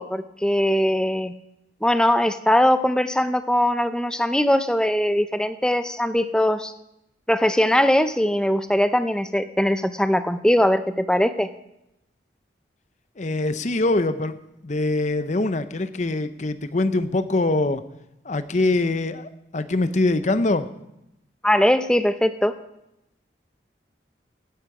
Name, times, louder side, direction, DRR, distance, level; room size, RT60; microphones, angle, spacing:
voice 1, 0.0-1.3 1.8-6.7 7.3-11.5 21.4-22.5, left 1 dB, 5° left, 10 dB, 0.5 m, -21 dB
voice 2, 13.2-14.4 14.6-17.8 18.2-20.7, left 2 dB, 40° left, 11 dB, 0.7 m, -23 dB
17.0 x 10.0 x 4.9 m, 0.87 s
head